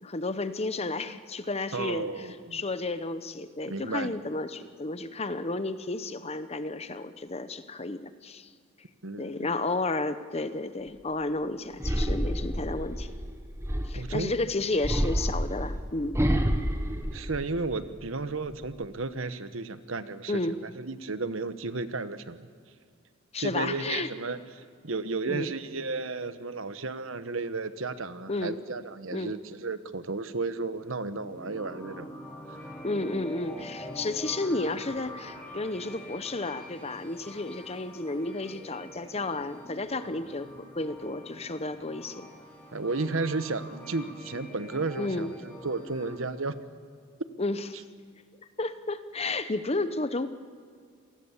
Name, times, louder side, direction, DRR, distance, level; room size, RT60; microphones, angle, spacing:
voice 1, 0.0-8.5 9.2-13.1 13.8-16.2 20.3-20.6 23.3-24.1 25.3-25.5 28.3-28.6 29.1-29.4 32.8-42.3 45.0-45.3 47.4-47.7 48.6-50.3, left 2 dB, 30° left, 12 dB, 0.9 m, -32 dB
voice 2, 1.7-2.6 3.7-4.1 9.0-9.5 13.9-14.3 17.1-22.5 23.4-24.4 24.8-32.1 42.7-46.6, right 3 dB, 70° right, 12 dB, 1.1 m, -33 dB
sound 1, 11.8-14.2 14.8-17.9 18.3-18.9, equal, 15° right, 1.2 m, -29 dB
sound 2, 30.8-46.2, left 1 dB, 10° left, 4.1 m, -45 dB
27.0 x 19.5 x 7.3 m, 2.1 s
head